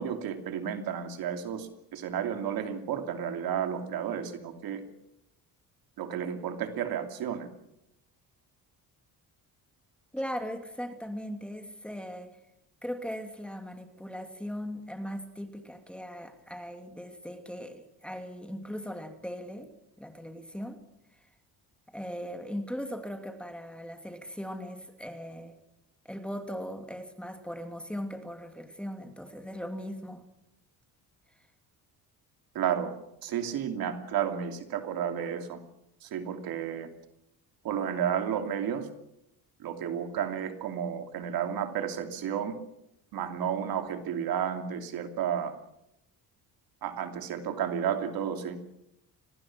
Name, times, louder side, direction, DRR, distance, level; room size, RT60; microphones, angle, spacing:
voice 1, 0.0-4.8 6.0-7.5 32.5-33.0 33.2-35.6 36.0-36.9 37.6-38.9 39.6-42.5 43.1-45.5 46.8-48.6, right 8 dB, 70° right, 6 dB, 2.9 m, -32 dB
voice 2, 10.1-12.4 12.8-19.7 20.0-20.8 21.9-25.6 26.0-30.3, equal, 5° left, 6 dB, 2.7 m, -39 dB
25.0 x 19.0 x 6.2 m, 0.83 s
cardioid pair, 130°, 37 cm